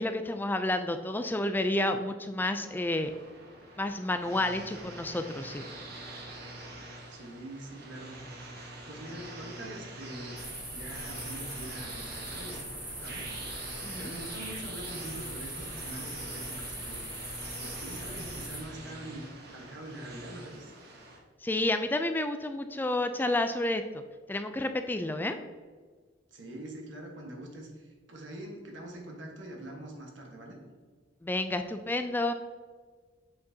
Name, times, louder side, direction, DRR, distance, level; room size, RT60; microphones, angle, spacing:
voice 1, 0.0-3.1 3.8-5.6 13.8-14.1 21.4-23.8 24.3-25.4 31.2-32.3, left 1 dB, 10° left, 8 dB, 0.3 m, -30 dB
sound 1, 2.4-21.2, right 1 dB, 60° right, 1.2 m, -45 dB
voice 2, 7.1-8.2 8.8-10.5 10.7-13.4 14.0-17.1 17.6-19.3 19.5-20.7 26.3-30.6, right 1 dB, 90° right, 1 dB, 1.4 m, -44 dB
sound 2, 10.4-18.6, right 1 dB, 10° right, 1.1 m, -41 dB
7.7 x 6.0 x 2.8 m, 1.5 s
head